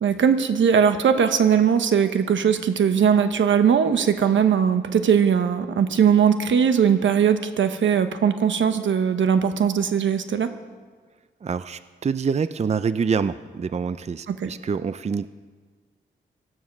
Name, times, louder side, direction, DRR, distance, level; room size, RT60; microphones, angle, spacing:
voice 1, 0.0-10.5 14.3-14.5, right 7 dB, 80° right, 9 dB, 1.1 m, -20 dB
voice 2, 11.4-15.3, right 5 dB, 35° right, 14 dB, 0.5 m, -26 dB
17.5 x 13.5 x 6.1 m, 1.5 s
cardioid pair, 70°, 19 cm